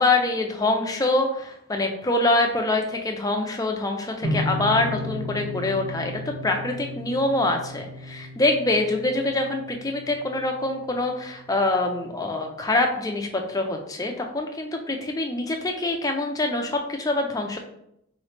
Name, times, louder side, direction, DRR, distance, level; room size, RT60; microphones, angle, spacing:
voice 1, 0.0-17.6, left 2 dB, 15° left, 3 dB, 0.4 m, -25 dB
sound 1, 4.2-11.4, left 1 dB, 80° right, 0.9 m, -34 dB
3.9 x 3.0 x 3.2 m, 0.78 s
head